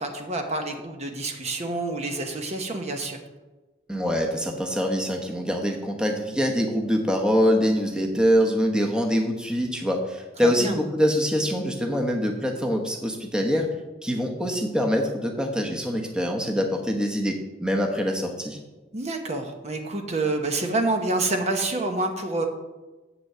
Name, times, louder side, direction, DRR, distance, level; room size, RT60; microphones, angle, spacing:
voice 1, 0.0-3.2 10.4-10.8 18.9-22.5, right 2 dB, 40° right, 4 dB, 1.0 m, -27 dB
voice 2, 3.9-13.7 14.0-18.6, equal, 5° right, 2 dB, 1.0 m, -24 dB
7.9 x 6.1 x 7.4 m, 1.1 s
head